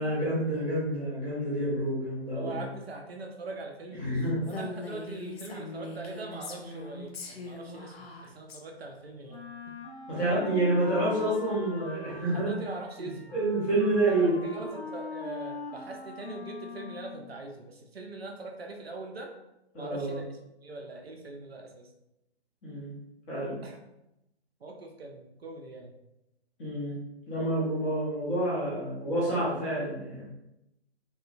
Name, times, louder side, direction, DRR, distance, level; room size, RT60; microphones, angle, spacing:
voice 1, 0.0-2.6 4.0-4.5 10.1-12.5 13.0-14.8 19.7-20.2 22.6-22.9 23.3-23.6 26.6-27.0 27.3-30.2, right 1 dB, 10° left, -8 dB, 0.6 m, -28 dB
voice 2, 2.3-9.8 12.3-13.3 14.1-19.3 19.8-20.2 20.6-21.9 23.6-23.8 24.6-26.0, right 3 dB, 65° right, 3 dB, 0.5 m, -42 dB
Female speech woman speaking, 4.4-8.6, left 3 dB, 65° left, 0.5 m, -41 dB
Wind instrument woodwind instrument, 9.3-17.4, left 3 dB, 35° left, 0.8 m, -42 dB
2.9 x 2.2 x 2.4 m, 0.87 s
figure-of-eight pair, 135°, 33 cm